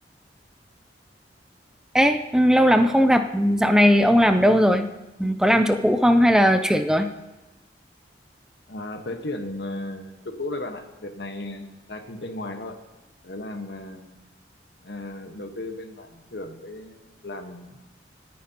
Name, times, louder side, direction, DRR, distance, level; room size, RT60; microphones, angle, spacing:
voice 1, 1.9-4.9 5.2-7.1, equal, 5° right, 8 dB, 0.4 m, -18 dB
voice 2, 8.7-12.8 13.2-14.2 14.8-17.8, left 2 dB, 70° left, 6 dB, 1.3 m, -35 dB
26.0 x 9.3 x 2.9 m, 1.1 s
head